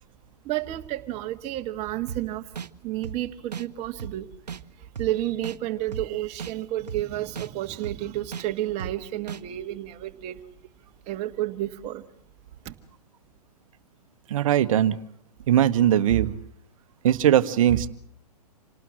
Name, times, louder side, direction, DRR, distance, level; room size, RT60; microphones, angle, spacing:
voice 1, 0.4-2.5 2.8-4.3 5.0-10.4 11.1-12.0 12.6-12.7, right 14 dB, 30° right, 1.7 m, -31 dB
sound 1, 2.1-2.2 2.6-2.7 3.0-3.2 3.5-3.6 4.0-4.1 4.5-4.6 5.0-5.1 5.4-5.6 5.9-6.0 6.4-6.5 6.9-7.0 7.3-7.5 7.8-8.0 8.3-8.4 8.8-8.9 9.3-9.4, right 7 dB, 80° right, 1.1 m, -35 dB
voice 2, 14.3-15.0 15.5-16.3 17.0-17.9, right 11 dB, 55° right, 1.4 m, -20 dB
27.5 x 19.0 x 7.5 m
figure-of-eight pair, 120°, 21 cm